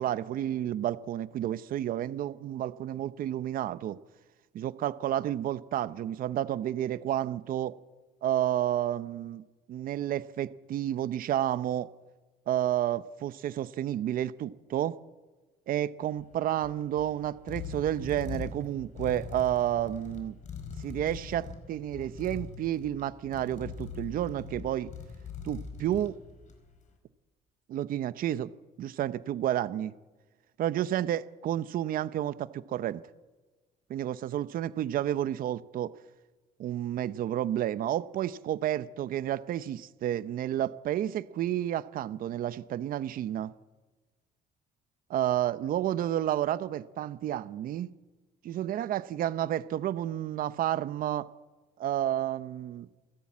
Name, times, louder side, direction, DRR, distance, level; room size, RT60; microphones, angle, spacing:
voice 1, 0.0-4.0 4.5-7.8 8.2-9.4 9.7-11.9 12.5-15.0 15.7-20.3 20.8-24.9 25.4-26.2 27.7-28.5 28.8-29.9 30.6-33.0 33.9-35.9 36.6-43.5 45.1-47.9 48.4-51.3 51.8-52.9, right 12 dB, 55° right, 0.7 m, -31 dB
sound 1, 16.2-26.8, left 5 dB, 45° left, 4.8 m, -42 dB
29.0 x 11.5 x 8.6 m
cardioid pair, 110°, 17 cm